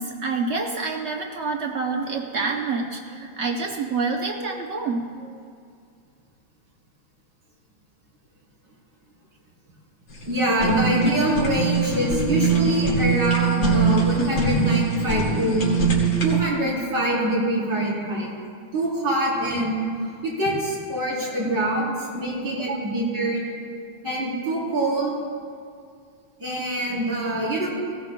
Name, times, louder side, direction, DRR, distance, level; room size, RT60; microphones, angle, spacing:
voice 1, 0.0-5.4 21.2-21.4 22.6-22.9 23.7-23.9 26.9-27.0, right 4 dB, 85° right, 2 dB, 0.6 m, -28 dB
Fire, 10.1-16.4, right 5 dB, 70° left, 2.8 m, -22 dB
voice 2, 10.2-15.7 16.2-18.3 18.7-19.7 20.2-23.4 24.0-25.1 26.4-27.7, right 1 dB, 60° right, -7 dB, 4.6 m, -24 dB
19.0 x 16.0 x 2.2 m, 2.2 s
omnidirectional pair, 2.2 m